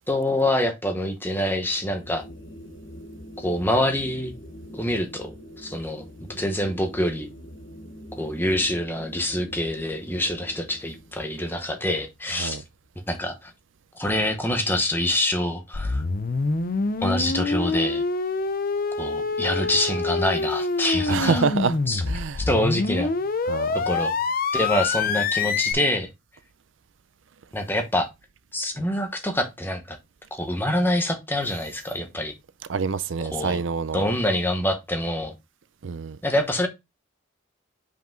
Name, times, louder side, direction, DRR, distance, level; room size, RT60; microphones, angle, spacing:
voice 1, 0.1-2.2 3.4-4.3 4.7-7.3 8.2-12.6 13.1-13.5 13.9-16.0 17.0-18.0 19.0-21.4 21.9-22.0 22.4-23.1 23.7-24.1 24.5-26.1 27.5-28.1 28.5-30.0 30.3-32.3 33.3-33.6 33.9-35.3 36.2-36.7, left 1 dB, 10° left, 1.1 m, -26 dB
sound 1, 1.7-13.0, equal, 65° left, 1.3 m, -44 dB
sound 2, 15.7-25.7, left 4 dB, 45° left, 0.5 m, -26 dB
voice 2, 21.1-21.8 22.1-22.5 23.5-23.8 32.7-34.1 35.8-36.2, right 5 dB, 70° right, 0.5 m, -26 dB
5.5 x 5.1 x 3.7 m
head